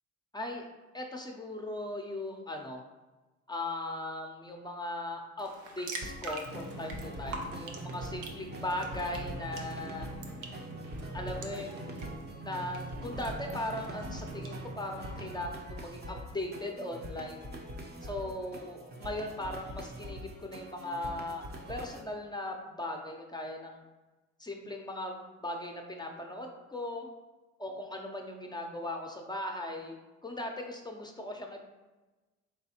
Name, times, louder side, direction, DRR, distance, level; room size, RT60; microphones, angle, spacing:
voice 1, 0.3-0.7 0.9-2.8 3.5-10.1 11.1-12.1 12.4-17.5 18.0-23.8 24.4-27.1 27.6-29.9 30.2-31.6, left 1 dB, 15° left, 2 dB, 0.5 m, -38 dB
sound 1, 5.4-14.5, right 3 dB, 85° right, 0.7 m, -47 dB
sound 2, 6.0-22.0, equal, 35° right, 0.6 m, -45 dB
sound 3, 6.4-15.4, right 2 dB, 55° right, 1.0 m, -43 dB
3.8 x 3.4 x 2.8 m, 1.2 s
cardioid pair, 90°, 30 cm